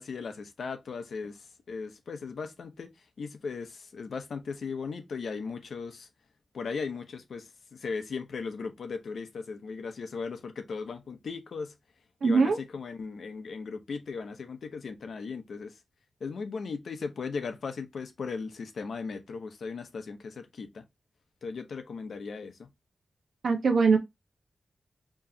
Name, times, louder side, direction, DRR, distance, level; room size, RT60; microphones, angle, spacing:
voice 1, 0.0-2.9 3.2-6.1 6.5-11.7 12.2-15.7 16.2-20.8 21.4-22.7, left 5 dB, 75° left, 0.9 m, -37 dB
voice 2, 12.2-12.6 23.4-24.0, right 4 dB, 90° right, 1.1 m, -22 dB
4.6 x 3.0 x 2.7 m
wide cardioid pair, 165°, 0 cm